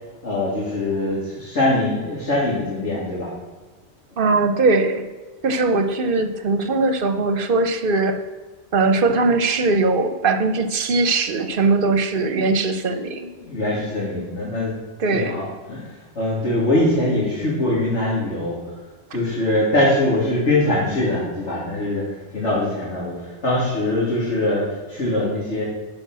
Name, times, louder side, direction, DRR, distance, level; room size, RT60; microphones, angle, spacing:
voice 1, 0.2-3.3 13.4-14.8 15.1-18.6 19.1-25.6, left 1 dB, 85° left, -8 dB, 3.0 m, -22 dB
voice 2, 4.2-5.0 5.4-8.2 8.7-13.3 15.0-15.4, right 3 dB, 55° right, 8 dB, 1.0 m, -20 dB
11.0 x 5.3 x 6.1 m, 1.3 s
omnidirectional pair, 1.2 m